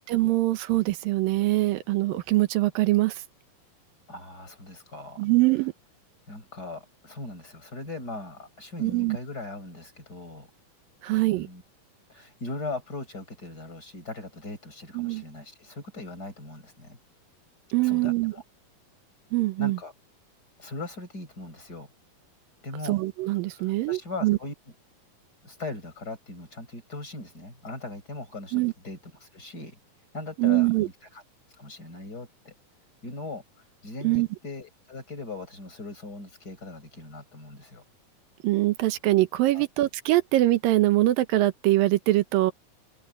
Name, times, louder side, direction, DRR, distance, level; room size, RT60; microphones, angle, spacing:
voice 1, 0.1-3.2 5.2-5.7 8.8-9.2 11.0-11.5 14.9-15.2 17.7-18.3 19.3-19.8 22.8-24.4 28.5-28.7 30.4-30.9 34.0-34.3 38.4-42.5, right 17 dB, 85° right, 2.7 m, -23 dB
voice 2, 4.1-5.3 6.3-10.5 11.1-11.6 12.1-17.0 17.8-18.4 19.6-19.9 20.6-21.9 22.6-23.0 23.5-24.5 25.4-29.8 30.1-31.2 31.6-32.5 33.0-33.4 33.8-37.8 39.5-39.7, left 2 dB, 25° left, 6.2 m, -39 dB
omnidirectional pair, 4.0 m